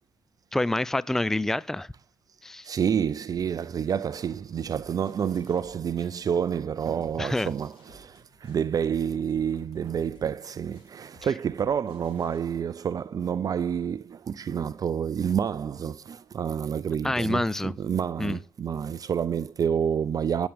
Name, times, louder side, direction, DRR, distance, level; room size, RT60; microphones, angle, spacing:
voice 1, 0.5-1.9 2.4-2.7 7.2-7.5 17.0-17.7 18.2-18.4, left 1 dB, 5° left, 0.5 m, -27 dB
voice 2, 2.6-20.5, right 8 dB, 45° right, 0.5 m, -28 dB
sound 1, 3.3-12.4, left 3 dB, 75° left, 5.5 m, -57 dB
18.5 x 7.1 x 3.5 m
hypercardioid pair, 50°, 9 cm